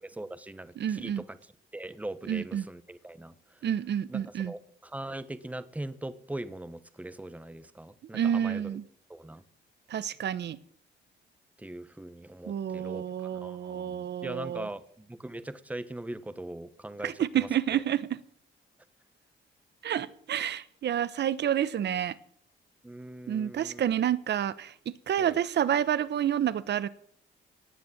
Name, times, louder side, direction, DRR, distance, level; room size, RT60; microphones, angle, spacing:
voice 1, 0.0-1.4 1.7-3.6 4.1-8.6 9.1-9.4 11.6-17.5 22.8-23.8 25.2-25.4, right 1 dB, 5° right, 1.1 m, -41 dB
voice 2, 0.8-1.2 2.3-2.6 3.6-4.5 8.1-8.8 9.9-10.6 12.5-14.7 17.0-18.1 19.8-22.2 23.3-26.9, right 10 dB, 60° right, 1.1 m, -29 dB
18.5 x 6.9 x 9.2 m
cardioid pair, 90°, 20 cm